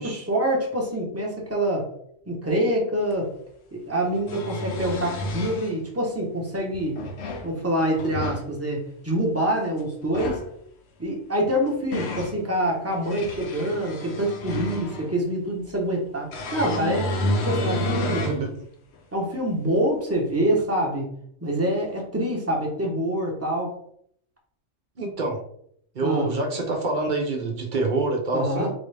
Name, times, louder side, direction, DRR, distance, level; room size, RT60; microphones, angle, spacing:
voice 1, 0.0-1.9 2.3-3.3 3.7-7.0 7.4-10.4 11.0-17.2 17.4-18.2 19.1-21.1 21.4-23.7 26.0-26.3 28.3-28.7, right 1 dB, 15° right, -1 dB, 0.8 m, -26 dB
sound 1, 3.1-3.2 4.0-5.7 6.7-7.5 7.9-8.4 10.0-10.5 11.4-12.4 12.9-15.1 16.3-18.4 19.0-19.1 20.6-20.7, left 1 dB, 60° left, 0.8 m, -30 dB
voice 2, 18.0-18.5 25.0-25.4 25.9-28.7, right 3 dB, 50° right, 1 dB, 0.7 m, -26 dB
4.0 x 2.5 x 3.3 m, 0.67 s
omnidirectional pair, 1.3 m